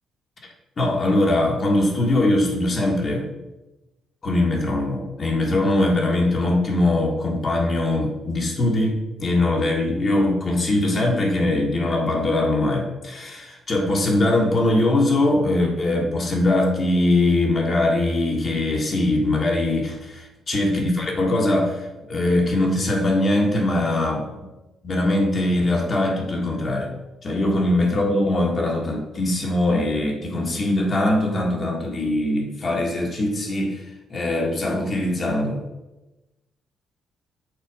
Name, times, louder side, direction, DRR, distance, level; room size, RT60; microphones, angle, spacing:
voice 1, 0.8-3.3 4.2-24.5 24.8-26.9 27.2-33.8 34.1-35.6, left 1 dB, 40° left, -1 dB, 1.7 m, -21 dB
6.8 x 4.2 x 4.9 m, 1.0 s
cardioid pair, 90°, 0 cm